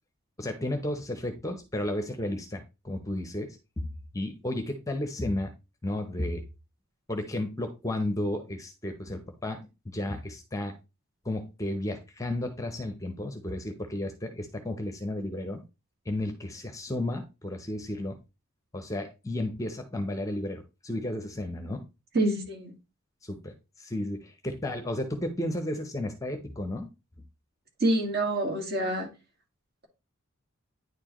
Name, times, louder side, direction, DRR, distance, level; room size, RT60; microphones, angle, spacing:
voice 1, 0.4-3.9 4.1-5.5 5.8-6.4 7.1-10.7 11.2-15.6 16.1-18.2 18.7-21.8 23.2-26.9, left 1 dB, 15° left, 0.7 m, -33 dB
voice 2, 22.1-22.7 27.8-29.1, right 1 dB, 45° right, 1.8 m, -26 dB
9.5 x 4.5 x 3.0 m
head